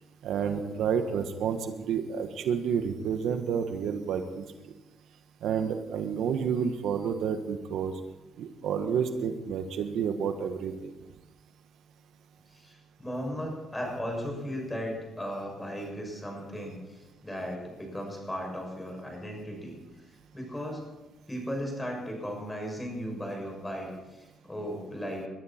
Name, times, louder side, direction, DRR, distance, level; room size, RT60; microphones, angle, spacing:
voice 1, 0.2-4.4 5.4-7.9 8.4-10.9, right 7 dB, 80° right, 7 dB, 1.4 m, -30 dB
voice 2, 12.5-19.8 20.1-20.8 21.3-25.3, equal, 10° left, 1 dB, 6.7 m, -36 dB
22.0 x 12.5 x 4.4 m, 1.1 s
cardioid pair, 90°, 0 cm